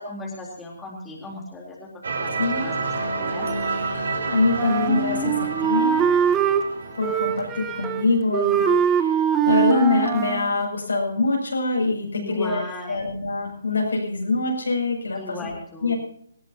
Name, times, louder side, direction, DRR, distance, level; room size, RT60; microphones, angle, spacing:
voice 1, 0.0-2.8 3.1-3.5 12.1-13.1 15.2-15.9, left 1 dB, 10° left, -3 dB, 3.9 m, -36 dB
sound 1, 2.0-8.8, right 3 dB, 65° right, 4.1 m, -30 dB
voice 2, 4.3-6.0 7.0-9.2 9.5-12.6 12.9-15.5 15.8-15.9, left 3 dB, 85° left, 0 dB, 7.7 m, -24 dB
Wind instrument woodwind instrument, 4.6-6.7 7.0-8.1 8.3-10.5, right 7 dB, 15° right, 1.2 m, -22 dB
19.5 x 17.5 x 3.0 m, 0.65 s
hypercardioid pair, 145°, 0 cm